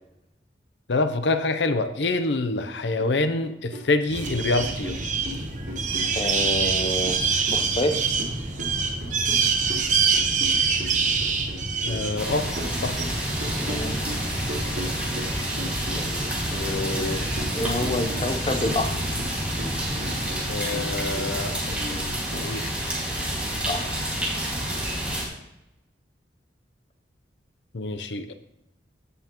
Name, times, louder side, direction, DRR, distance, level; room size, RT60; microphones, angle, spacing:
voice 1, 0.9-4.9 11.8-12.5 12.8-12.9 20.5-22.7 27.7-28.3, left 3 dB, 80° left, 10 dB, 0.7 m, -26 dB
sound 1, 2.6-2.7 3.0-4.2 4.6-6.5 6.8-11.6 11.9-16.4 16.7-19.3 19.6-22.5, equal, 70° right, 3.4 m, -39 dB
sound 2, 4.1-20.3, right 4 dB, 45° right, 1.0 m, -27 dB
voice 2, 6.1-7.2 7.5-8.1 13.5-14.0 16.0-19.0 23.7-24.0, left 1 dB, 30° left, 7 dB, 0.8 m, -29 dB
sound 3, 12.2-25.3, equal, 10° right, 2.0 m, -29 dB
14.5 x 5.5 x 3.0 m, 0.89 s
head